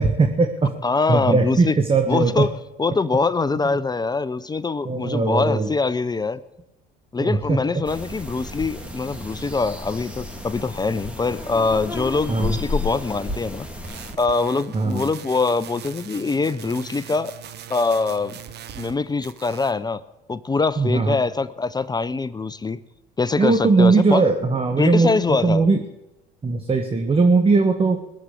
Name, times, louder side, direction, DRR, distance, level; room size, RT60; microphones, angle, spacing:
voice 1, 0.0-0.7 1.1-2.4 3.6-3.8 4.8-5.7 7.2-7.6 12.3-12.6 14.7-15.1 20.8-21.2 23.4-25.8 26.4-28.0, right 3 dB, 30° right, 5 dB, 1.5 m, -19 dB
voice 2, 0.8-1.8 2.1-2.5 2.8-6.4 7.1-13.7 14.2-17.3 17.7-18.4 18.8-20.0 20.3-22.8 23.2-24.3 24.8-25.7, left 4 dB, 20° left, 16 dB, 0.6 m, -23 dB
sound 1, 7.8-14.1, left 2 dB, 5° right, 2.7 m, -32 dB
sound 2, 13.8-19.0 19.2-19.8, right 9 dB, 55° right, 1.2 m, -40 dB
20.0 x 7.5 x 8.3 m, 0.95 s
supercardioid pair, 80°, 20 cm